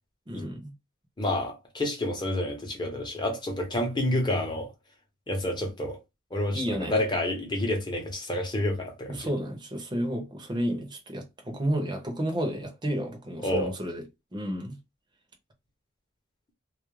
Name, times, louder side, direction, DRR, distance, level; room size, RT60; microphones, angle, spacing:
voice 1, 0.3-0.7 6.5-6.9 9.1-14.0 14.3-14.8, equal, 25° right, 0.7 m, -31 dB
voice 2, 1.2-4.7 5.3-6.0 6.3-9.3 13.4-13.7, left 1 dB, 25° left, 0.8 m, -29 dB
2.3 x 2.0 x 3.0 m
head